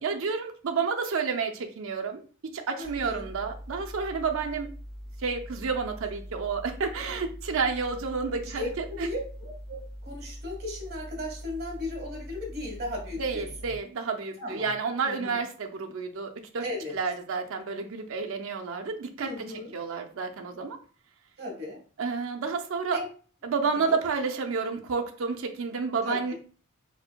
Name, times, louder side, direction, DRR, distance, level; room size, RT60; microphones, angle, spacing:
voice 1, 0.0-4.7 5.2-9.1 13.2-16.6 16.9-19.3 19.7-20.8 22.0-23.0 23.4-26.3, right 5 dB, 65° right, 4 dB, 0.5 m, -30 dB
sound 1, 2.8-13.8, equal, ahead, 1.2 m, -42 dB
voice 2, 2.8-3.3 8.5-13.5 14.4-14.7 15.0-15.4 16.6-17.0 19.2-19.7 21.4-21.8 22.9-23.1 23.7-24.0 26.0-26.3, left 1 dB, 50° right, 0 dB, 1.4 m, -36 dB
4.7 x 2.5 x 2.2 m, 0.39 s
head